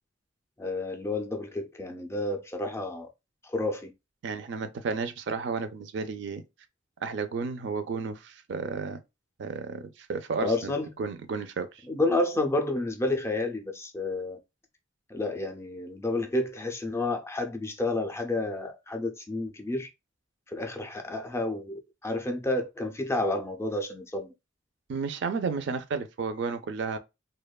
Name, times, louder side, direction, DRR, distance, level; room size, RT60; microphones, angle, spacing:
voice 1, 0.6-3.1 3.4-3.9 10.4-11.0 11.9-14.4 15.1-19.9 20.5-24.3, left 2 dB, 15° left, 0.3 m, -30 dB
voice 2, 4.2-6.4 7.0-9.0 9.4-11.7 24.9-27.0, right 5 dB, 65° right, 0.4 m, -32 dB
2.8 x 2.1 x 2.2 m
head